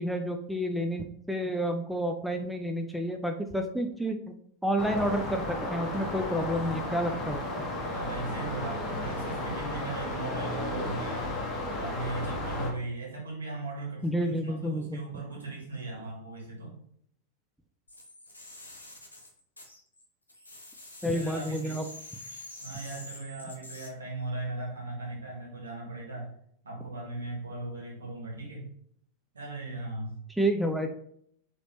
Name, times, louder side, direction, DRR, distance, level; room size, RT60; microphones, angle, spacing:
voice 1, 0.0-4.3 4.6-7.4 7.8-7.9 14.0-15.0 21.0-21.9 30.3-30.9, equal, ahead, 4 dB, 0.4 m, -30 dB
sound 1, 4.8-12.7, left 1 dB, 25° left, 1.0 m, -34 dB
voice 2, 7.9-11.4 11.8-16.7 21.0-21.8 22.3-26.3 26.6-28.7 29.3-30.1, right 2 dB, 70° right, -2 dB, 1.6 m, -38 dB
sound 2, 17.9-20.0 20.3-23.9, left 1 dB, 80° left, 0.9 m, -46 dB
4.0 x 3.0 x 3.0 m, 0.67 s
figure-of-eight pair, 90°, 0 cm